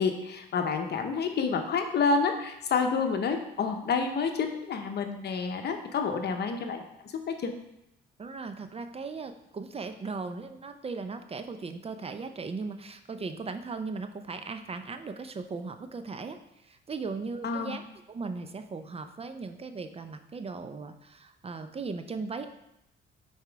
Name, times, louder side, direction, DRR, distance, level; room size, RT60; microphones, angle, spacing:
voice 1, 0.0-7.5 17.4-17.8, left 5 dB, 55° left, 5 dB, 0.8 m, -29 dB
voice 2, 8.2-17.8 18.1-22.5, right 4 dB, 30° right, 8 dB, 0.5 m, -38 dB
5.8 x 4.3 x 4.6 m, 0.83 s
cardioid pair, 90°, 20 cm